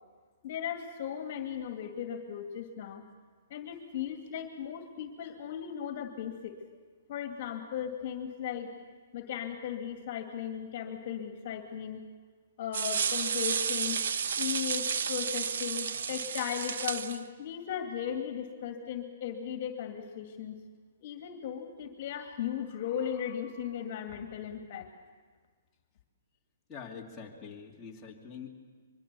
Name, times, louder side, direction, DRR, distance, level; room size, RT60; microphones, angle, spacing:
voice 1, 0.4-3.0 3.5-6.6 7.1-8.7 9.1-12.1 12.6-14.0 14.4-20.6 21.0-24.9, left 9 dB, 45° left, 5 dB, 2.3 m, -37 dB
sound 1, 12.7-17.2, right 6 dB, 70° right, 1.0 m, -31 dB
voice 2, 26.7-28.6, left 6 dB, 10° left, -4 dB, 2.8 m, -45 dB
24.5 x 23.0 x 7.0 m, 1.5 s
hypercardioid pair, 155°, 0 cm